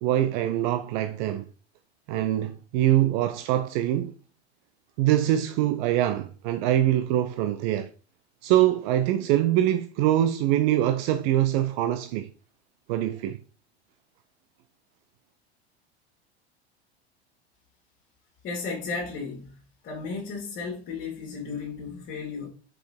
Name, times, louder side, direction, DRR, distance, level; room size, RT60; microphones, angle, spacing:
voice 1, 0.0-1.5 2.1-4.1 5.0-7.9 8.4-12.3 12.9-13.4, right 12 dB, 45° right, 0.7 m, -24 dB
voice 2, 18.4-19.6 19.8-22.5, left 4 dB, 35° left, 2.8 m, -34 dB
5.6 x 5.6 x 4.4 m
figure-of-eight pair, 80°, 33 cm